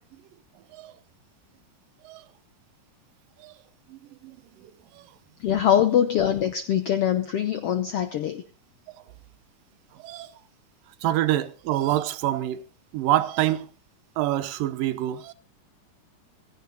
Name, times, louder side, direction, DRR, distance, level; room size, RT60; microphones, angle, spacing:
voice 1, 3.9-4.4 10.0-10.3 11.0-12.6 12.9-13.7 14.2-15.3, right 14 dB, 90° right, 2.6 m, -26 dB
voice 2, 5.4-8.4, left 9 dB, 80° left, 1.3 m, -23 dB
15.5 x 15.5 x 4.1 m
omnidirectional pair, 3.8 m